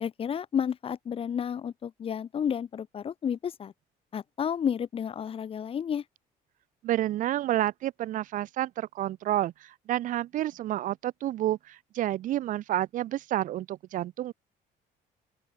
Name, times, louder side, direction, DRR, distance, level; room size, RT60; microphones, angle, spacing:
voice 1, 0.0-3.7 4.1-6.0, left 8 dB, 35° left, 0.6 m, -31 dB
voice 2, 6.8-14.3, right 13 dB, 50° right, 0.4 m, -30 dB
open air
cardioid pair, 110°, 17 cm